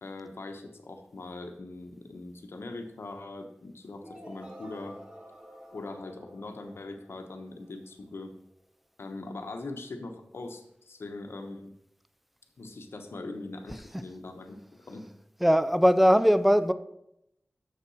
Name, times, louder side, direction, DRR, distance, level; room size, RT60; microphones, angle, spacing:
voice 1, 0.0-5.0 5.7-8.3 9.0-11.7 12.6-15.1, left 2 dB, 80° left, 1.1 m, -41 dB
sound 1, 4.0-7.9, equal, 25° right, 1.4 m, -50 dB
voice 2, 15.4-16.7, equal, 5° right, 0.5 m, -20 dB
7.0 x 6.8 x 6.3 m
wide cardioid pair, 70°, 4 cm